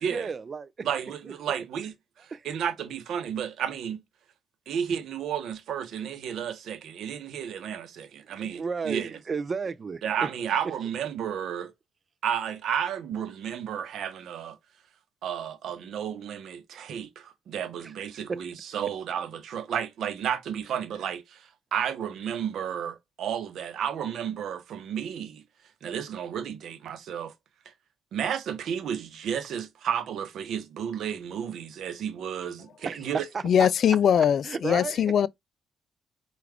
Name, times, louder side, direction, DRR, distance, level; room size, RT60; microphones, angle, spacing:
voice 1, 0.1-0.9 1.2-1.3 2.3-2.4 8.5-10.3 17.8-17.9 18.3-18.4 32.8-33.5 33.9-35.0, right 5 dB, 40° right, 0.3 m, -33 dB
voice 2, 0.8-4.0 4.7-9.1 10.0-11.7 12.2-14.6 15.2-25.4 25.8-27.3 28.1-33.2, right 8 dB, 70° right, 0.8 m, -32 dB
voice 3, 33.4-35.3, left 8 dB, 60° left, 0.3 m, -21 dB
4.7 x 2.4 x 3.4 m
cardioid pair, 90°, 0 cm